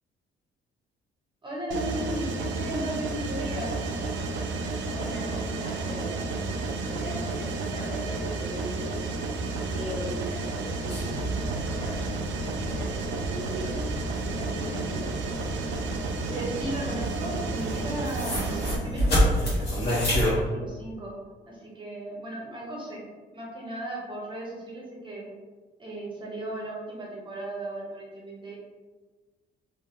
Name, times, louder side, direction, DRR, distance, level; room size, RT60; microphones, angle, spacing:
voice 1, 1.4-3.7 16.3-21.1 21.5-23.0 23.3-25.3 25.8-28.6, right 1 dB, 25° right, -4 dB, 0.7 m, -36 dB
Mechanisms, 1.7-18.8, right 3 dB, 70° right, 0.4 m, -32 dB
voice 2, 4.8-6.3 6.8-9.0 9.7-15.1, equal, 35° left, -5 dB, 1.0 m, -39 dB
sound 1, 10.9-20.3, equal, 55° left, 1.2 m, -30 dB
2.6 x 2.4 x 2.4 m, 1.3 s
cardioid pair, 90°, 20 cm